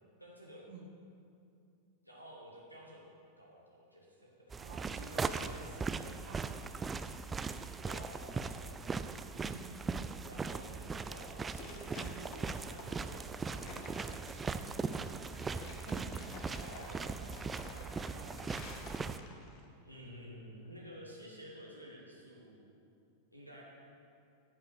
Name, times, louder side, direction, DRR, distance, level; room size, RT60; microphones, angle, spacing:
voice 1, 0.2-0.7 2.0-4.6 5.0-5.9 7.9-9.1 10.2-15.2 16.6-17.4 19.8-22.6 23.3-23.6, equal, 90° right, -4 dB, 1.5 m, -52 dB
sound 1, 4.5-19.2, right 4 dB, 15° right, 0.4 m, -39 dB
voice 2, 4.5-6.7 7.0-7.3 9.4-9.9 15.8-19.2, right 3 dB, 55° right, 3 dB, 1.3 m, -53 dB
sound 2, 11.4-19.6, left 3 dB, 40° left, 1.4 m, -51 dB
14.0 x 5.7 x 6.7 m, 2.5 s
figure-of-eight pair, 90°, 0 cm